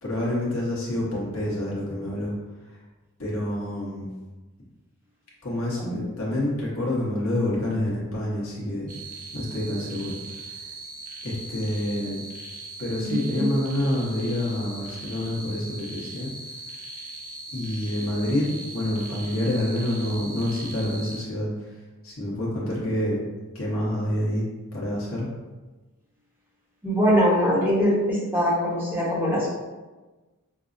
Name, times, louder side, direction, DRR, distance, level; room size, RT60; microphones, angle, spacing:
voice 1, 0.0-2.3 2.7-2.8 3.2-4.1 5.4-8.9 9.3-10.5 11.2-12.2 12.8-16.3 17.5-21.7 22.0-23.2 23.5-24.5 24.7-25.3, left 1 dB, 75° left, -5 dB, 1.0 m, -27 dB
sound 1, 8.9-21.2, right 2 dB, 35° right, 0.5 m, -40 dB
voice 2, 13.0-13.4 26.8-29.5, equal, 10° right, -8 dB, 0.9 m, -22 dB
5.2 x 2.0 x 2.5 m, 1.2 s
head